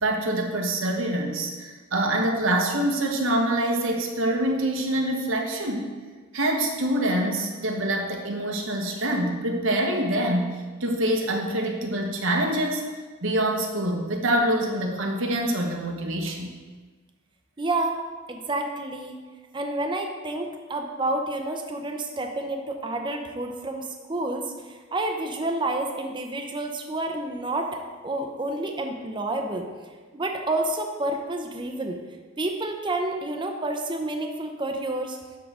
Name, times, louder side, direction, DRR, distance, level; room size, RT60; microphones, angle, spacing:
voice 1, 0.0-5.9 6.3-10.5 10.8-12.9 13.2-16.5, right 1 dB, 85° right, 2 dB, 1.2 m, -25 dB
voice 2, 17.6-18.0 18.3-19.2 19.5-27.7 28.0-29.7 30.1-32.0 32.4-35.2, right 2 dB, 25° right, 3 dB, 0.7 m, -29 dB
11.0 x 3.9 x 6.2 m, 1.4 s
head